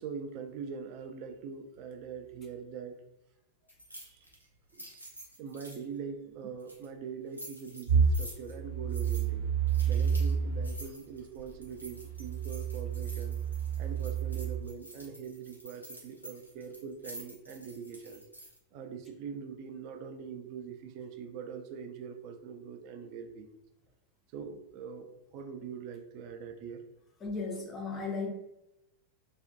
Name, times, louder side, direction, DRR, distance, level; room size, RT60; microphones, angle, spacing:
voice 1, 0.0-3.0 4.0-4.3 4.7-4.9 5.4-9.5 9.8-13.4 13.8-18.2 18.7-23.6 24.3-26.8, right 6 dB, 45° right, 5 dB, 0.3 m, -43 dB
sound 1, 3.7-5.8 6.6-6.9 7.3-8.6 8.9-9.3 9.7-10.3 10.6-18.6, right 1 dB, 90° left, 0.6 m, -49 dB
sound 2, 7.9-10.8 11.4-14.6, right 6 dB, 75° right, 0.7 m, -30 dB
voice 2, 27.2-28.3, left 4 dB, 25° left, 1 dB, 0.5 m, -35 dB
2.4 x 2.1 x 2.5 m, 0.87 s
figure-of-eight pair, 90°, 0 cm